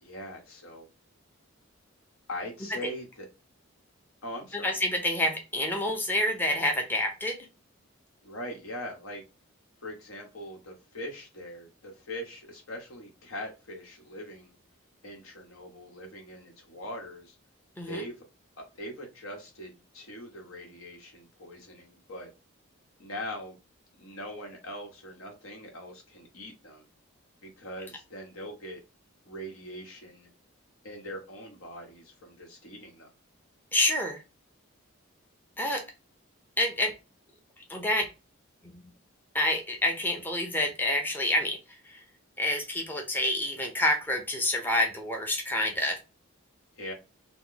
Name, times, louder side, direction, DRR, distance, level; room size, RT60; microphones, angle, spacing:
voice 1, 0.0-0.9 2.3-3.3 4.2-4.8 8.2-9.2 9.8-14.6 15.0-17.4 17.8-18.2 18.6-22.3 23.0-23.5 24.0-26.8 27.4-28.8 29.2-30.3 30.8-33.1 46.8-46.9, left 1 dB, 85° left, 1.1 m, -41 dB
voice 2, 4.6-7.3 17.8-18.0 33.7-34.2 35.6-35.8 36.6-36.9 37.7-38.1 38.6-38.8 39.3-41.6 41.9-42.0 42.4-46.0, left 1 dB, 10° left, 0.5 m, -28 dB
3.0 x 2.2 x 3.8 m
head